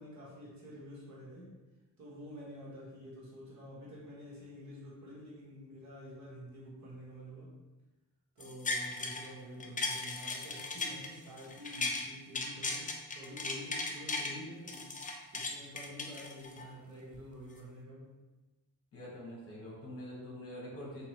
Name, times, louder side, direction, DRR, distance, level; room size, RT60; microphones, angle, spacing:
voice 1, 0.0-1.5 2.0-7.5 8.4-14.9 15.3-18.2, equal, 50° right, -6 dB, 1.3 m, -48 dB
sound 1, 8.4-9.3 9.6-12.0 12.3-14.3 14.7-16.7 17.1-17.2, left 3 dB, 25° left, 0.4 m, -37 dB
voice 2, 18.9-21.1, left 1 dB, 40° left, -5 dB, 1.4 m, -45 dB
3.7 x 2.9 x 3.1 m, 1.1 s
wide cardioid pair, 130°, 35 cm